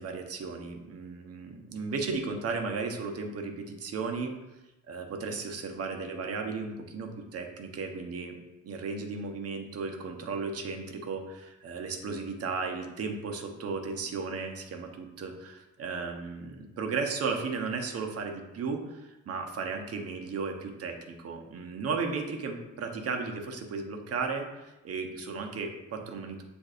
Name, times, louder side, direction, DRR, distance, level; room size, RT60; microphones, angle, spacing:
voice 1, 0.0-4.3 4.9-8.3 8.6-26.4, right 4 dB, 50° right, 4 dB, 0.8 m, -35 dB
7.6 x 2.6 x 2.5 m, 0.98 s
cardioid pair, 90°, 30 cm